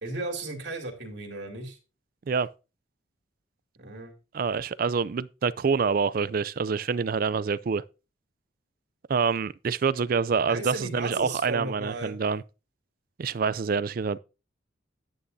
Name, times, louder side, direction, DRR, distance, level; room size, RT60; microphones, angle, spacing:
voice 1, 0.0-1.8 3.8-4.1 10.4-12.1, right 2 dB, 65° right, 2.9 m, -35 dB
voice 2, 4.3-7.8 9.1-12.4 13.2-14.2, right 5 dB, 50° right, 0.4 m, -26 dB
11.0 x 9.8 x 2.7 m
head